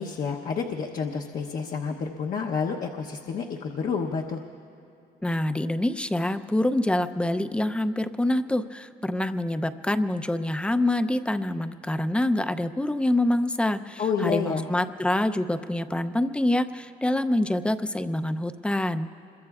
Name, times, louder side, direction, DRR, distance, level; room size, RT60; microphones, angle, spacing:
voice 1, 0.0-4.4 14.0-14.6, left 5 dB, 50° left, 0 dB, 0.9 m, -29 dB
voice 2, 5.2-19.1, left 1 dB, 5° left, 9 dB, 0.6 m, -26 dB
26.5 x 22.5 x 2.4 m, 2.9 s
cardioid pair, 110°, 17 cm